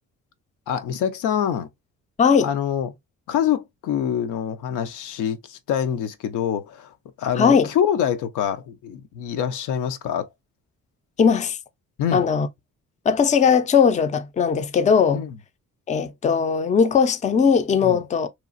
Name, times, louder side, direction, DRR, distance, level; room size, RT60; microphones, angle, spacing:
voice 1, 0.7-1.7 2.4-2.9 3.3-10.3 12.0-12.3 15.1-15.4 17.8-18.0, left 9 dB, 80° left, 0.6 m, -25 dB
voice 2, 2.2-2.5 7.4-7.7 11.2-11.6 12.1-12.5 13.1-15.2 15.9-18.3, left 6 dB, 25° left, 0.4 m, -19 dB
3.0 x 2.4 x 2.4 m
cardioid pair, 90°, 30 cm